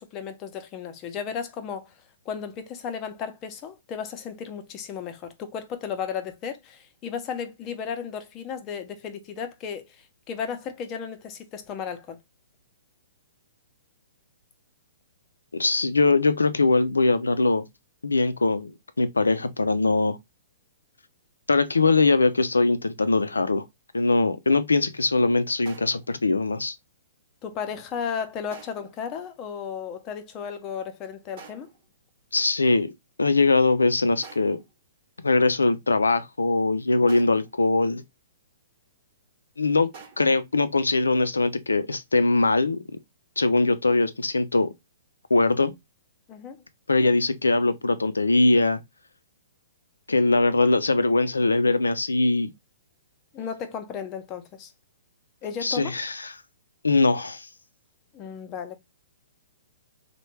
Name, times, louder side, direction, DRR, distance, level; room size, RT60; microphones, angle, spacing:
voice 1, 0.0-1.9 2.3-12.2 27.4-31.7 46.3-46.6 53.3-54.7 55.4-55.9 58.1-58.8, left 7 dB, 30° left, 0.6 m, -34 dB
voice 2, 15.5-17.7 18.0-18.7 19.0-20.2 21.5-23.6 23.9-26.8 32.3-32.9 33.2-34.6 35.2-38.0 39.6-39.9 40.2-42.8 43.4-44.7 45.3-45.7 46.9-48.8 50.1-52.5 55.6-56.3 56.8-57.5, left 3 dB, 90° left, 0.4 m, -21 dB
sound 1, 25.6-26.2 28.5-29.0 31.4-31.9 34.2-34.7 37.1-37.6 39.9-40.4, right 5 dB, 45° right, 1.0 m, -47 dB
3.2 x 2.2 x 3.0 m
hypercardioid pair, 125°, 0 cm